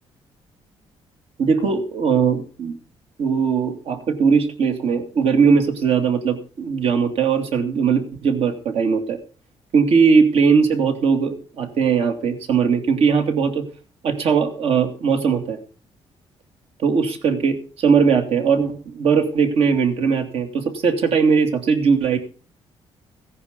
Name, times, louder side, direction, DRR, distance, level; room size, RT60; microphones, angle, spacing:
voice 1, 1.4-2.8 3.2-9.2 9.7-13.7 14.0-15.6 16.8-22.2, right 6 dB, 65° right, 6 dB, 2.6 m, -19 dB
16.5 x 10.0 x 5.3 m, 0.37 s
cardioid pair, 165°, 11 cm